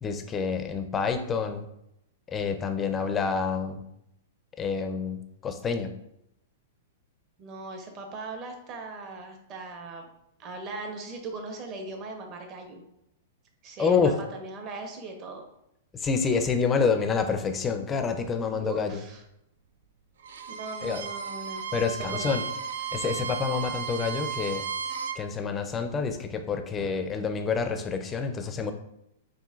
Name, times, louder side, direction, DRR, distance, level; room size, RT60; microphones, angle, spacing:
voice 1, 0.0-1.7 2.3-3.8 4.6-5.9 13.8-14.1 15.9-19.0 20.8-21.0 21.7-22.4 22.9-24.7 25.2-28.7, left 5 dB, 15° left, 7 dB, 0.4 m, -28 dB
voice 2, 7.4-10.1 10.4-12.8 13.6-15.4 18.5-19.2 20.5-22.4, right 3 dB, 30° right, 3 dB, 0.8 m, -39 dB
Bowed string instrument, 20.2-25.2, right 7 dB, 85° right, 0.4 m, -34 dB
6.9 x 2.5 x 2.4 m, 0.79 s
hypercardioid pair, 145°, 0 cm